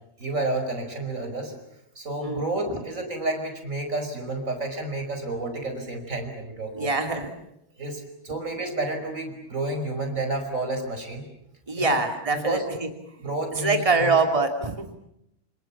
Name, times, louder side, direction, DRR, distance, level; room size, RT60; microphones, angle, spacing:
voice 1, 0.2-1.5 1.9-6.9 7.8-11.2 11.8-12.0 12.4-12.6 13.2-14.1, right 2 dB, 15° right, 5 dB, 5.1 m, -30 dB
voice 2, 2.2-2.8 6.7-7.3 11.7-12.9 13.5-14.9, right 3 dB, 45° right, 4 dB, 0.4 m, -24 dB
29.0 x 27.5 x 7.3 m, 0.80 s
omnidirectional pair, 5.7 m